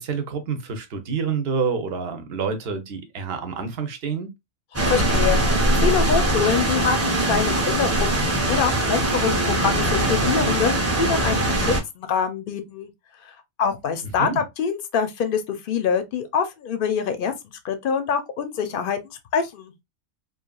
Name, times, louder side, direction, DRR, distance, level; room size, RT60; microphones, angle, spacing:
voice 1, 0.0-4.3 14.2-14.4, right 5 dB, 60° right, 0.9 m, -28 dB
sound 1, 4.7-11.8, right 1 dB, 15° right, 0.7 m, -21 dB
voice 2, 4.9-10.7 11.0-12.9 13.6-17.3 17.6-19.0 19.3-19.7, left 7 dB, 60° left, 0.6 m, -25 dB
3.1 x 2.4 x 2.2 m
omnidirectional pair, 1.3 m